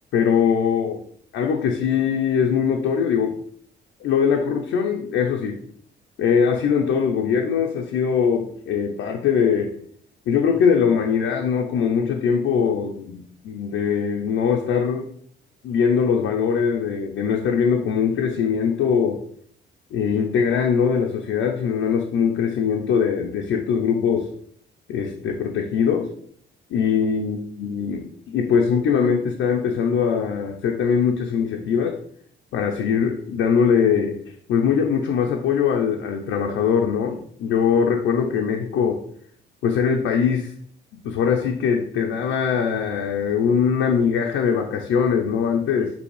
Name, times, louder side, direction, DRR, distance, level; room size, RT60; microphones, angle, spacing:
voice 1, 0.1-1.0 1.3-3.4 4.0-5.6 6.2-9.7 10.3-15.1 15.6-19.2 19.9-24.3 24.9-26.1 26.7-32.0 32.5-34.1 34.5-39.0 39.6-40.5 41.0-45.9, left 6 dB, 80° left, 1 dB, 0.6 m, -21 dB
5.2 x 2.8 x 3.2 m, 0.63 s
cardioid pair, 90°, 20 cm